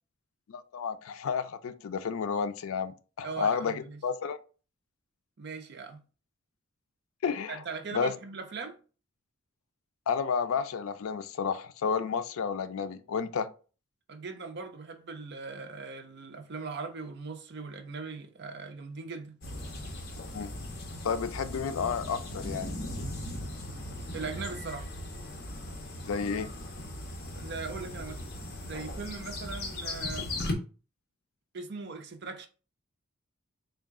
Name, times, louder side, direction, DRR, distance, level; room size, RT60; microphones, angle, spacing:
voice 1, 0.5-4.4 7.2-7.6 7.9-8.1 10.1-13.5 20.3-20.6 21.0-22.8 26.0-26.5, left 6 dB, 85° left, 0.4 m, -31 dB
voice 2, 3.2-4.0 5.4-6.0 7.5-8.8 14.1-19.4 24.1-24.9 27.4-28.2 28.6-30.3 31.5-32.5, right 4 dB, 55° right, 0.5 m, -39 dB
sound 1, 19.4-30.5, left 1 dB, 50° left, 0.8 m, -38 dB
3.8 x 2.3 x 3.5 m
head